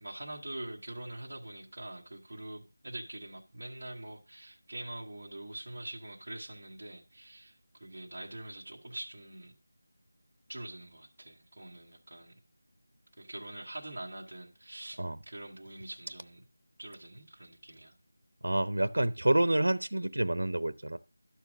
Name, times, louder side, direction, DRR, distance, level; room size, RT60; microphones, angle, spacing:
voice 1, 0.0-9.5 10.5-12.4 13.2-16.4 16.8-18.0, right 1 dB, 35° right, 1.2 m, -44 dB
voice 2, 18.4-21.0, right 1 dB, 80° right, 0.7 m, -28 dB
12.0 x 4.5 x 6.1 m
figure-of-eight pair, 180°, 0 cm